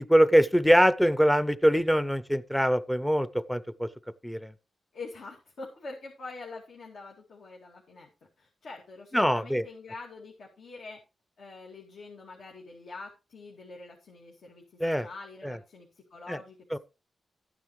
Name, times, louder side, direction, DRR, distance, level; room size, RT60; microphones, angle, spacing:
voice 1, 0.0-3.9 4.2-4.5 9.1-9.6 14.8-15.1 15.4-15.6 16.3-16.4 16.7-16.8, equal, 5° left, 0.6 m, -23 dB
voice 2, 4.9-8.1 8.4-11.0 11.4-16.6, left 3 dB, 70° left, 2.3 m, -45 dB
13.0 x 9.4 x 3.1 m
wide cardioid pair, 115°, 0 cm